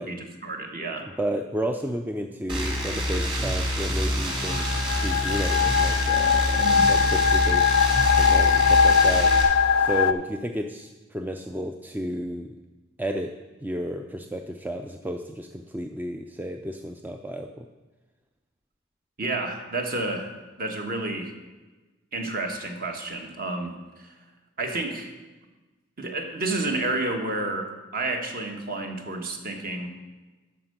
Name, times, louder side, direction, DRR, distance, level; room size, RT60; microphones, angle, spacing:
voice 1, 0.0-1.1 6.6-6.9 19.2-20.3 20.6-21.3 22.1-24.1 24.6-25.1 26.0-29.9, right 2 dB, 45° right, 4 dB, 1.2 m, -30 dB
voice 2, 1.2-7.7 8.1-9.3 9.8-12.6 13.0-13.3 13.6-17.7, equal, 10° right, 5 dB, 0.3 m, -32 dB
sound 1, 2.5-9.4, equal, 25° right, 1.9 m, -27 dB
sound 2, 4.3-10.1, left 6 dB, 80° left, 0.4 m, -21 dB
11.5 x 4.6 x 6.6 m, 1.2 s
head